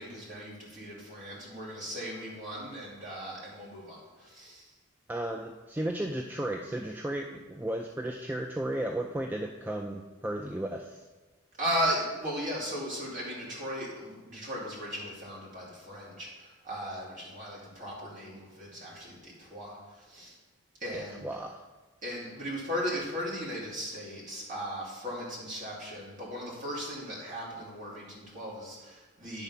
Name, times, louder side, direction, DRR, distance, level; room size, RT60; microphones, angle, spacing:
voice 1, 0.0-4.7 11.6-20.4 20.8-21.3 22.0-29.4, equal, 40° right, -5 dB, 2.5 m, -37 dB
voice 2, 5.1-11.0 20.9-21.6, right 1 dB, 10° right, 2 dB, 0.3 m, -34 dB
9.9 x 3.9 x 5.6 m, 1.3 s
head